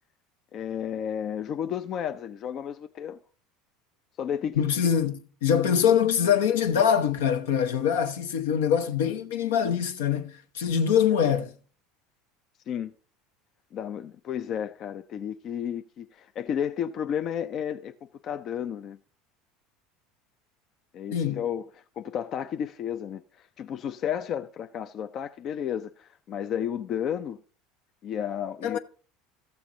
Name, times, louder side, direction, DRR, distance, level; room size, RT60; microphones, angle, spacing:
voice 1, 0.5-3.2 4.2-4.6 12.7-12.9 13.7-17.9 18.2-19.0 20.9-21.7 22.0-27.4 28.0-28.8, left 9 dB, 50° left, 0.5 m, -32 dB
voice 2, 4.6-11.5 21.1-21.4 28.6-28.8, left 8 dB, 75° left, 0.9 m, -24 dB
14.0 x 7.0 x 3.8 m
hypercardioid pair, 75°, 0 cm